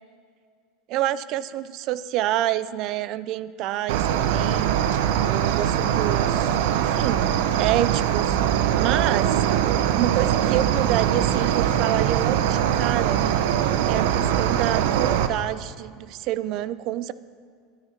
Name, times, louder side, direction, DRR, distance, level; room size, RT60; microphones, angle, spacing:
voice 1, 0.9-4.8 5.3-8.4 8.8-13.2 13.9-17.1, right 13 dB, 50° right, 16 dB, 0.5 m, -28 dB
Cricket, 3.9-15.3, right 10 dB, 75° right, 0.8 m, -22 dB
12.5 x 11.5 x 5.8 m, 2.2 s
supercardioid pair, 135°, 0 cm